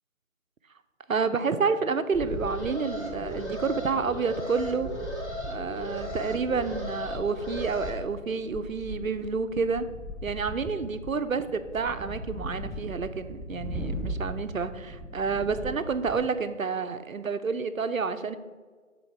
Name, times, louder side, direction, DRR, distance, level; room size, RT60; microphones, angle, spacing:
voice 1, 1.1-4.9 5.5-9.9 10.2-18.4, right 5 dB, 80° right, 10 dB, 0.6 m, -29 dB
sound 1, 2.1-16.3, equal, ahead, 0.4 m, -39 dB
Alarm, 2.3-7.9, left 1 dB, 55° left, 1.4 m, -37 dB
6.6 x 3.8 x 4.7 m, 1.5 s
figure-of-eight pair, 175°, 40 cm